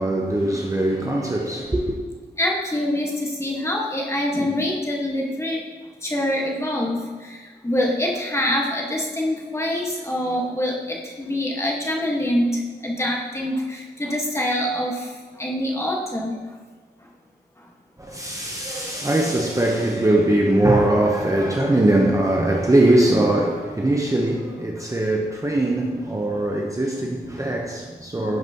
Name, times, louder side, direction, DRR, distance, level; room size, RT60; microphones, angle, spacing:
voice 1, 0.0-2.0 18.0-28.4, right 1 dB, 20° right, 0.8 m, -21 dB
voice 2, 2.4-5.6 6.0-16.6 17.0-17.1 17.6-17.7, left 1 dB, 15° left, 1.4 m, -25 dB
10.5 x 5.9 x 2.9 m
wide cardioid pair, 85°, 18 cm